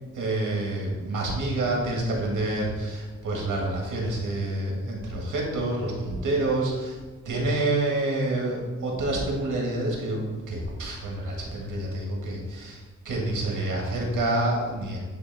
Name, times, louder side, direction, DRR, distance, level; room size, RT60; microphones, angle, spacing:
voice 1, 0.1-7.0 7.2-12.8 13.0-15.0, right 2 dB, 80° right, -1 dB, 1.7 m, -28 dB
9.6 x 3.3 x 3.5 m, 1.3 s
cardioid pair, 100°, 31 cm